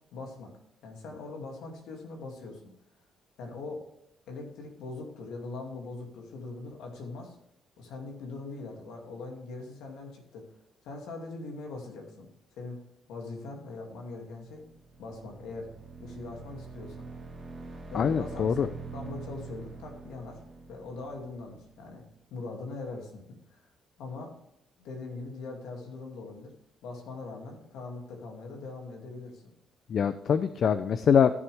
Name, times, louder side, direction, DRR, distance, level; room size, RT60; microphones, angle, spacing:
voice 1, 0.1-0.5 0.8-2.6 3.4-3.9 4.3-7.4 7.8-10.5 10.8-12.3 12.6-12.8 13.1-14.7 15.0-15.7 16.0-17.1 17.9-20.4 20.7-22.0 22.3-23.2 23.5-23.7 24.0-24.3 24.8-26.5 26.8-29.5, left 3 dB, 90° left, 2 dB, 2.4 m, -41 dB
sound 1, 14.4-22.1, right 4 dB, 30° right, 2.2 m, -45 dB
voice 2, 17.9-18.7 29.9-31.3, left 7 dB, 60° left, 12 dB, 0.5 m, -24 dB
14.5 x 7.0 x 3.4 m, 0.77 s
cardioid pair, 90°, 0 cm